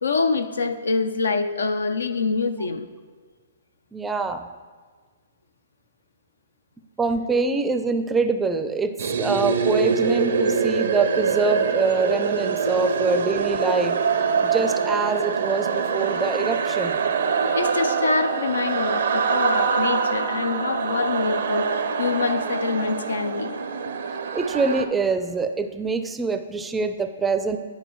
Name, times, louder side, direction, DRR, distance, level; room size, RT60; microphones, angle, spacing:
voice 1, 0.0-2.9 17.5-23.6, left 4 dB, 80° left, 10 dB, 0.5 m, -25 dB
voice 2, 3.9-4.5 7.0-14.0 14.4-17.0 24.3-27.6, right 4 dB, 10° right, 8 dB, 0.4 m, -24 dB
sound 1, 9.0-24.8, right 5 dB, 70° right, 0.5 m, -24 dB
10.0 x 5.1 x 3.1 m, 1.5 s
hypercardioid pair, 125°, 0 cm